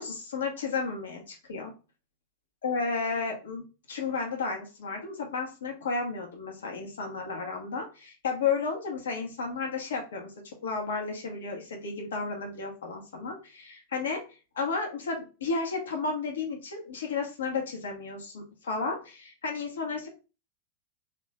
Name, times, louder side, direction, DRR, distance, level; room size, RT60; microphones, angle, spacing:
voice 1, 0.0-1.7 2.6-10.3 10.6-14.2 14.5-20.1, left 4 dB, 65° left, 2 dB, 1.2 m, -33 dB
3.6 x 3.1 x 2.8 m, 0.32 s
figure-of-eight pair, 90°, 0 cm